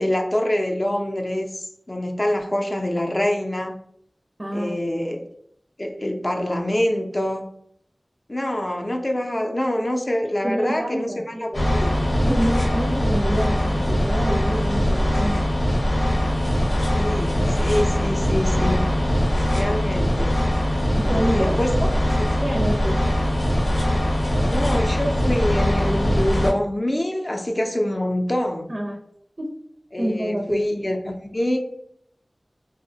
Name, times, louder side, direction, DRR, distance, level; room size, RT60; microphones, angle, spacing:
voice 1, 0.0-3.8 4.5-5.2 5.8-7.5 8.3-11.9 16.9-18.9 19.5-20.4 21.0-21.7 22.2-22.3 24.4-28.7 29.9-31.6, left 1 dB, 40° left, 2 dB, 0.4 m, -25 dB
voice 2, 4.4-4.7 10.4-11.5 12.2-15.5 21.0-21.9 22.4-23.2 28.7-29.0 29.4-29.5 30.0-30.6, equal, 40° right, -1 dB, 0.4 m, -27 dB
sound 1, 11.5-26.5, equal, 90° left, 0.7 m, -21 dB
2.7 x 2.0 x 2.6 m, 0.68 s
wide cardioid pair, 50°, 0 cm